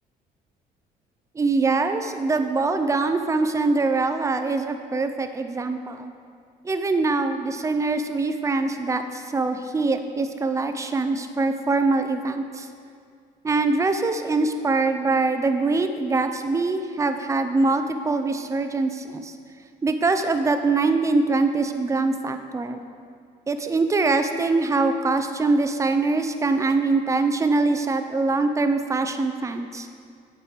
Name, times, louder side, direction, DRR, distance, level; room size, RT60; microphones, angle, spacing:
voice 1, 1.4-6.1 6.6-12.7 13.4-19.3 19.8-22.8 23.5-29.9, right 3 dB, 20° right, 8 dB, 0.5 m, -23 dB
9.0 x 4.7 x 5.1 m, 2.2 s
cardioid pair, 110°, 17 cm